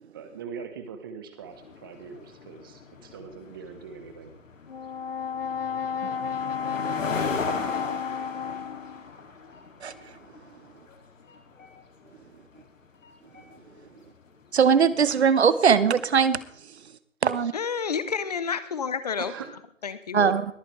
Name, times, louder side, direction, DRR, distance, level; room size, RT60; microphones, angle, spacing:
voice 1, 0.1-4.3 19.2-19.6, right 6 dB, 15° right, 8 dB, 1.0 m, -41 dB
sound 1, 1.5-15.0, left 4 dB, 65° left, 2.6 m, -38 dB
Brass instrument, 4.7-9.1, left 7 dB, 45° left, 0.4 m, -32 dB
voice 2, 14.5-16.4 17.2-17.5 20.1-20.5, right 6 dB, 50° right, 15 dB, 1.0 m, -20 dB
voice 3, 17.5-19.3 19.8-20.4, left 6 dB, 30° left, 14 dB, 0.8 m, -29 dB
22.0 x 9.0 x 3.3 m, 0.62 s
hypercardioid pair, 160°, 40 cm